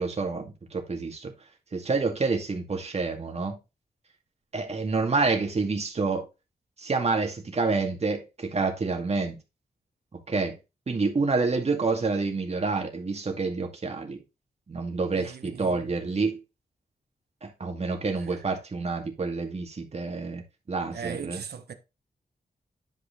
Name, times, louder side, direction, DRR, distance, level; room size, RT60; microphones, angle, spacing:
voice 1, 0.0-1.3 1.7-3.6 4.5-6.3 6.8-9.4 10.1-10.6 10.9-14.2 14.7-16.4 17.4-20.4 20.7-21.4, right 4 dB, 40° right, 2.2 m, -28 dB
voice 2, 15.1-15.9 18.2-18.5 20.9-21.7, right 7 dB, 90° right, 1.2 m, -39 dB
11.0 x 4.9 x 3.7 m
wide cardioid pair, 120°, 16 cm